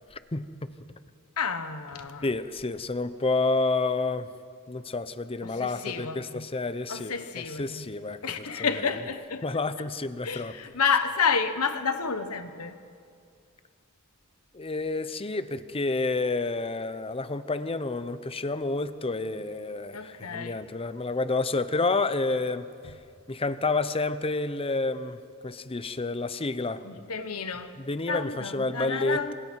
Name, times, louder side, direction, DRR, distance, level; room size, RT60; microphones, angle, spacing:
voice 1, 0.1-0.7 2.2-4.3 4.7-7.1 7.6-8.2 9.4-10.5 14.5-22.9 23.3-26.9 27.8-29.3, left 3 dB, 25° left, 0.7 m, -29 dB
voice 2, 1.4-2.3 5.4-6.5 6.9-7.9 8.2-9.4 10.2-12.8 19.9-20.6 22.8-22.9 26.8-27.7 28.1-29.3, left 5 dB, 80° left, 1.3 m, -30 dB
26.5 x 26.0 x 4.7 m
head